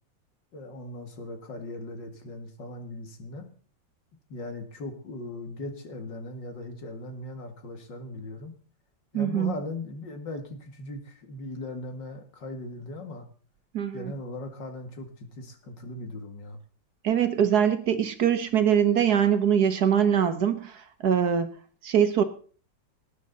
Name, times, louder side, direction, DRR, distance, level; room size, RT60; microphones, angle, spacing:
voice 1, 0.5-3.5 4.3-8.5 9.1-13.3 13.9-16.6, left 2 dB, 65° left, 6 dB, 2.6 m, -39 dB
voice 2, 9.1-9.5 13.7-14.1 17.0-21.5 21.8-22.2, right 8 dB, 60° right, 10 dB, 1.5 m, -23 dB
19.0 x 9.8 x 4.0 m, 0.43 s
omnidirectional pair, 2.1 m